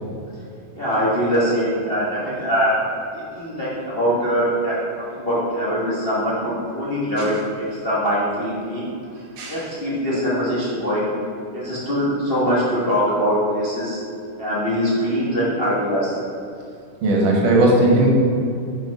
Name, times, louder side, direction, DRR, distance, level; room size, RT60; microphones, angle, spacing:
voice 1, 0.7-2.7 3.1-8.8 9.5-11.1 11.5-14.0 14.4-16.2, equal, 85° left, -9 dB, 0.5 m, -22 dB
voice 2, 17.0-18.1, right 2 dB, 85° right, -2 dB, 3.0 m, -16 dB
5.8 x 5.8 x 5.3 m, 2.6 s
omnidirectional pair, 3.7 m